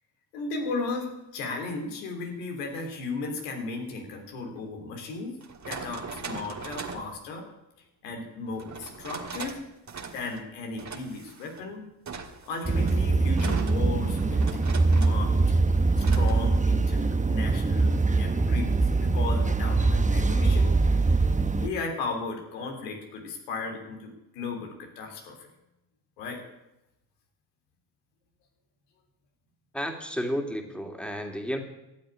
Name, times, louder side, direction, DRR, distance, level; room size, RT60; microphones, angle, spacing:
voice 1, 0.3-5.4 5.6-7.4 8.0-9.6 10.0-11.8 12.4-14.5 14.9-15.4 15.9-20.7 21.6-25.5 26.2-26.4, left 3 dB, 90° left, 2 dB, 3.5 m, -35 dB
sound 1, 2.8-3.0 4.6-4.7 5.4-7.1 8.6-9.6 9.9-10.4 10.8-11.6 12.1-15.3 16.0-16.4, right 5 dB, 35° right, 2.4 m, -40 dB
sound 2, 12.6-21.7, right 3 dB, 15° right, 1.1 m, -23 dB
voice 2, 29.7-31.6, equal, ahead, 4 dB, 2.9 m, -32 dB
14.0 x 7.8 x 9.8 m, 0.91 s
hypercardioid pair, 65°, 47 cm